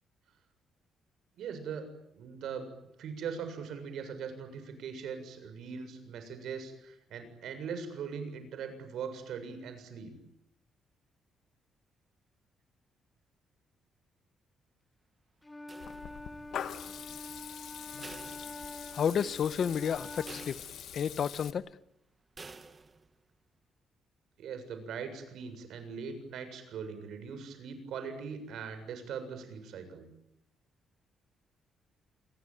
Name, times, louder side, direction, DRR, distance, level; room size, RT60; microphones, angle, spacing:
voice 1, 1.4-1.9 2.1-2.7 3.0-10.1 24.4-30.1, right 6 dB, 70° right, 7.4 m, -40 dB
Wind instrument woodwind instrument, 15.4-20.6, left 1 dB, 10° left, 1.2 m, -46 dB
sound 1, 15.7-16.5 18.0-19.1 19.5-19.6 20.3-21.2 22.4-23.1, right 3 dB, 20° right, 1.6 m, -50 dB
Water tap faucet / Liquid, 15.8-21.5, left 9 dB, 65° left, 2.1 m, -44 dB
voice 2, 18.9-20.6 20.9-21.6, left 7 dB, 45° left, 1.1 m, -31 dB
28.5 x 22.0 x 9.4 m
cardioid pair, 160°, 0 cm